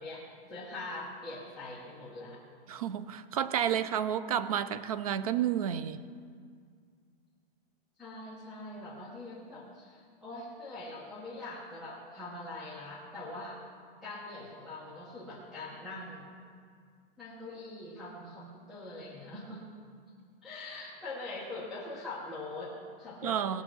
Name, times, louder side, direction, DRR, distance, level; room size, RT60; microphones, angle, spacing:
voice 1, 0.0-2.4 8.0-13.6 14.0-16.3 17.2-19.6 20.4-23.6, left 2 dB, ahead, 0.9 m, -43 dB
voice 2, 2.7-6.0 23.2-23.6, right 9 dB, 40° right, 0.4 m, -31 dB
18.0 x 6.7 x 6.1 m
supercardioid pair, 175°, 29 cm